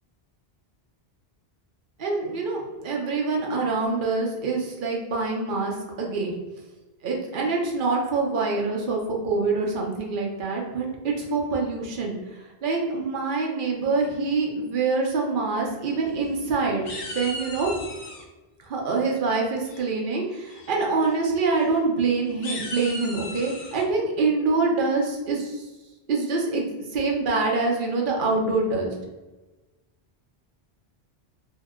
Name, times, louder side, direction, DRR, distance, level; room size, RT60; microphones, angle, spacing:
voice 1, 2.0-6.3 7.0-16.9 17.1-17.7 18.6-25.7 26.1-28.9, right 3 dB, 55° right, -1 dB, 0.7 m, -25 dB
sound 1, 15.9-16.5 16.8-18.2 19.7-20.1 20.5-20.7 21.0-21.1 21.5-21.7 22.3-23.8, left 2 dB, 55° left, 0.6 m, -37 dB
2.7 x 2.0 x 3.5 m, 1.2 s
omnidirectional pair, 1.1 m